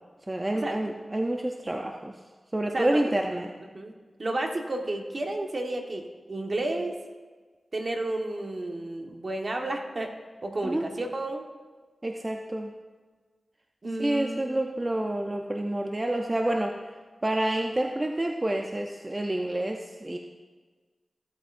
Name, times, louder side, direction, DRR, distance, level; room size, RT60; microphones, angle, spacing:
voice 1, 0.3-2.1 2.5-3.5 10.6-10.9 12.0-12.7 14.0-16.8 17.2-20.2, right 1 dB, 30° right, 2 dB, 0.7 m, -28 dB
voice 2, 2.7-3.2 3.7-3.9 4.2-6.9 7.7-10.1 10.4-11.5 13.8-14.4, right 2 dB, 55° right, 2 dB, 1.3 m, -31 dB
15.5 x 8.2 x 2.6 m, 1.4 s
cardioid pair, 45°, 0 cm